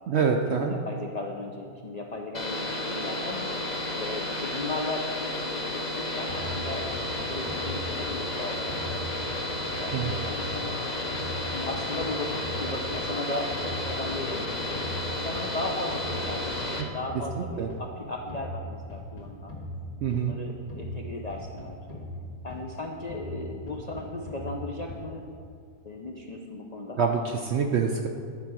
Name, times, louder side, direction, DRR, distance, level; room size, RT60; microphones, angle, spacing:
voice 1, 0.1-0.7 9.9-10.1 17.6-17.7 20.0-20.4 27.0-28.1, right 6 dB, 70° right, 3 dB, 0.6 m, -25 dB
voice 2, 0.6-3.5 4.0-5.6 5.9-9.3 9.7-10.8 11.5-14.7 15.2-19.5 20.1-22.0 22.4-25.2 25.8-27.0, left 2 dB, 75° left, 1 dB, 0.3 m, -36 dB
sound 1, 2.3-16.8, left 1 dB, 35° left, 0.8 m, -32 dB
sound 2, 6.3-8.4 8.7-10.8 11.1-13.2 13.5-15.6 15.9-17.9 18.3-20.4 20.7-22.8 23.1-25.2, equal, 55° left, 2.1 m, -39 dB
11.0 x 4.7 x 6.2 m, 2.3 s
omnidirectional pair, 1.6 m